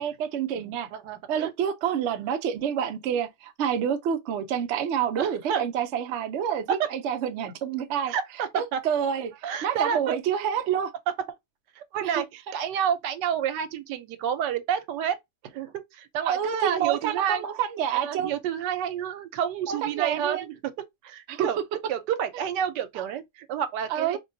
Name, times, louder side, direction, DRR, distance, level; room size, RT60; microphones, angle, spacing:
voice 1, 0.0-0.9 1.3-8.1 8.5-9.3 9.6-10.9 12.0-12.2 16.2-18.3 19.7-20.5 21.3-21.5 23.9-24.2, right 8 dB, 65° right, 0.7 m, -28 dB
voice 2, 0.9-1.5 5.2-5.7 6.7-6.9 8.1-8.8 9.4-10.2 11.8-15.2 15.4-17.4 17.9-20.7 21.0-21.6 21.9-24.2, right 8 dB, 85° right, 1.2 m, -29 dB
4.1 x 2.2 x 2.6 m
omnidirectional pair, 1.8 m